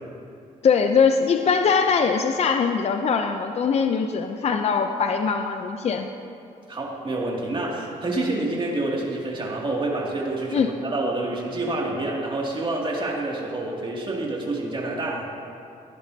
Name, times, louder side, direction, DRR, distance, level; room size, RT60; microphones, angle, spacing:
voice 1, 0.6-6.1 10.5-10.7, left 6 dB, 50° left, 6 dB, 0.6 m, -21 dB
voice 2, 6.7-15.3, right 2 dB, 35° right, -3 dB, 2.5 m, -28 dB
16.0 x 10.5 x 2.8 m, 2.5 s
cardioid pair, 85°, 14 cm